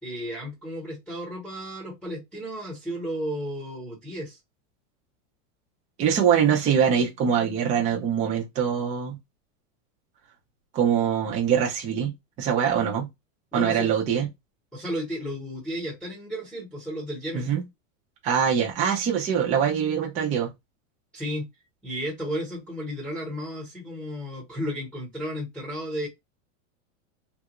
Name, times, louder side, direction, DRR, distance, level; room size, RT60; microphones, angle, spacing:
voice 1, 0.0-4.4 13.5-14.2 14.7-17.5 21.1-21.5 21.8-26.1, equal, 5° left, 1.0 m, -33 dB
voice 2, 6.0-9.2 10.7-13.1 13.5-14.3 17.3-17.6 18.2-20.5, right 8 dB, 20° right, 0.6 m, -23 dB
3.4 x 2.5 x 2.9 m
supercardioid pair, 170°, 38 cm